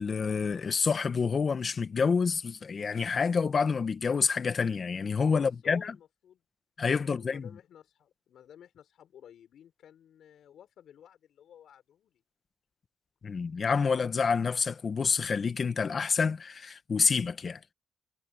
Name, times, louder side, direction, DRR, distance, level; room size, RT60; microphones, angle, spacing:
voice 1, 0.0-5.9 6.8-7.4 13.2-17.6, left 5 dB, 40° left, 1.4 m, -28 dB
voice 2, 5.2-6.4 6.9-12.2, left 9 dB, 70° left, 5.6 m, -54 dB
cardioid pair, 90°, 0 cm